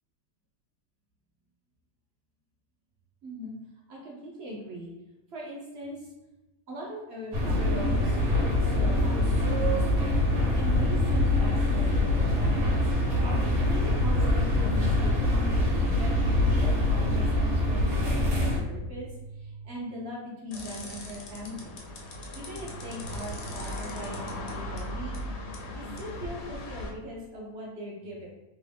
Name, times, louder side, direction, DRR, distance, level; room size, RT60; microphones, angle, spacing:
voice 1, 3.2-3.5 3.9-4.9 5.3-6.1 6.7-10.1 10.5-12.8 13.6-21.7 22.3-25.2 25.7-28.3, equal, 55° right, -4 dB, 0.8 m, -40 dB
sound 1, 7.3-18.6, left 1 dB, 80° right, 1.4 m, -24 dB
sound 2, 20.5-26.9, left 1 dB, 60° left, 0.7 m, -38 dB
3.0 x 2.4 x 3.4 m, 1.0 s
omnidirectional pair, 1.6 m